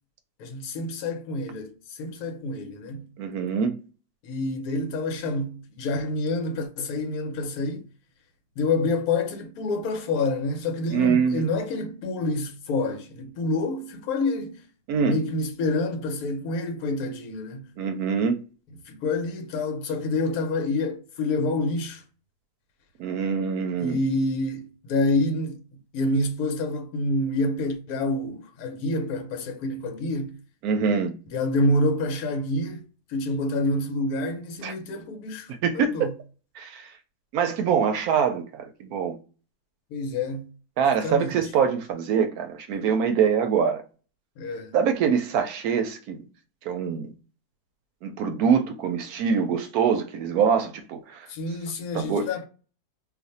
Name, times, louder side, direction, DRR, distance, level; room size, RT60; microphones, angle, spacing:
voice 1, 0.4-3.1 4.2-7.8 8.6-14.6 15.0-17.7 18.9-22.0 23.8-25.6 25.9-30.4 31.3-32.8 33.1-36.1 39.9-40.5 41.0-41.4 44.4-44.7 51.3-52.5, left 2 dB, 75° left, 1.1 m, -27 dB
voice 2, 3.2-3.8 10.9-11.4 14.9-15.2 17.8-18.4 23.0-24.0 30.6-31.2 34.6-34.7 35.6-36.1 36.6-36.9 37.3-39.2 40.8-43.8 44.7-46.2 46.6-47.1 48.0-51.3 51.9-52.3, right 6 dB, 75° right, 1.0 m, -24 dB
2.5 x 2.5 x 4.0 m
omnidirectional pair, 1.7 m